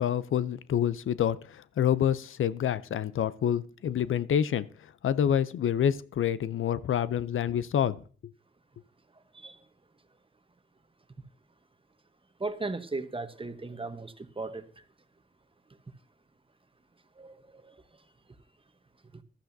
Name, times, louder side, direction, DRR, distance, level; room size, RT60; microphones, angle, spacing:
voice 1, 0.0-8.3, left 9 dB, 75° left, 0.5 m, -28 dB
voice 2, 12.4-14.6 17.2-17.7, right 3 dB, 25° right, 1.0 m, -36 dB
14.5 x 11.5 x 2.7 m
cardioid pair, 60°, 21 cm